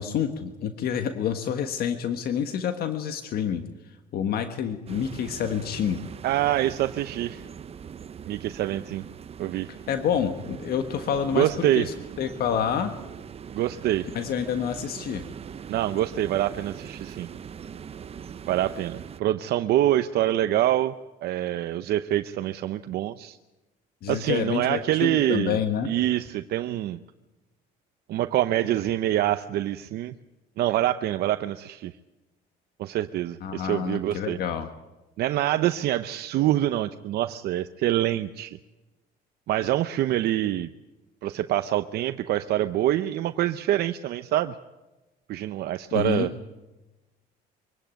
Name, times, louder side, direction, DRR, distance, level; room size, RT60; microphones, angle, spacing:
voice 1, 0.0-3.6 4.1-6.0 9.9-12.9 14.1-15.2 24.0-25.9 33.4-34.7 45.9-46.3, left 8 dB, 65° left, 8 dB, 1.5 m, -28 dB
sound 1, 4.9-19.2, right 7 dB, 35° right, 0.8 m, -41 dB
voice 2, 6.2-7.4 8.3-9.0 9.4-9.7 11.3-11.9 13.5-14.1 15.7-17.3 18.5-21.0 21.2-23.4 24.1-25.6 25.8-27.0 28.1-30.2 30.6-31.9 32.8-34.4 35.2-38.6 39.5-40.7 41.2-44.6 45.3-46.3, right 13 dB, 70° right, 10 dB, 0.8 m, -25 dB
23.5 x 17.0 x 9.2 m, 1.1 s
cardioid pair, 110°, 17 cm